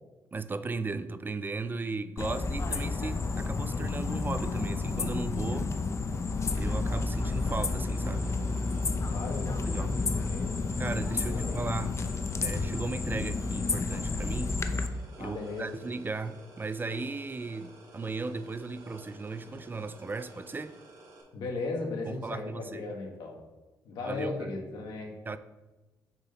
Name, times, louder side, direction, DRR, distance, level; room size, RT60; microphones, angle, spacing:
voice 1, 0.3-5.7 6.5-8.4 9.7-10.0 10.8-12.0 12.4-14.6 15.2-20.8 22.1-22.8 24.0-24.5 25.3-25.4, right 3 dB, 25° right, 0.4 m, -36 dB
sound 1, 2.2-14.9, left 3 dB, 35° left, 0.5 m, -31 dB
sound 2, 6.4-21.2, right 2 dB, 60° right, 2.0 m, -52 dB
voice 2, 9.1-10.6 11.2-11.7 15.2-15.7 21.3-23.4 23.8-25.2, left 3 dB, 80° left, 1.3 m, -36 dB
7.1 x 2.8 x 5.6 m
cardioid pair, 70°, 8 cm